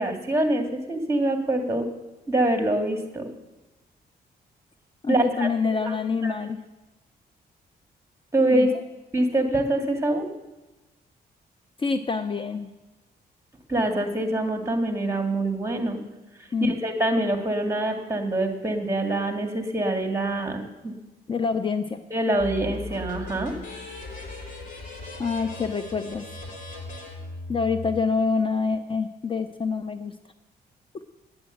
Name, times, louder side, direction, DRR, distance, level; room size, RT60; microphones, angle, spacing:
voice 1, 0.0-1.9 2.3-3.3 5.1-5.5 5.8-6.0 6.2-6.4 8.3-8.7 9.1-10.3 13.7-16.0 16.6-20.9 22.1-23.5, right 1 dB, 15° right, 5 dB, 2.0 m, -25 dB
voice 2, 5.0-6.6 8.5-8.7 11.8-12.7 16.5-16.7 21.3-22.0 25.2-26.3 27.5-30.1, left 5 dB, 30° left, 9 dB, 0.6 m, -26 dB
sound 1, 22.4-28.0, left 2 dB, 50° left, 3.0 m, -38 dB
9.8 x 8.8 x 7.9 m, 1.1 s
cardioid pair, 90°, 17 cm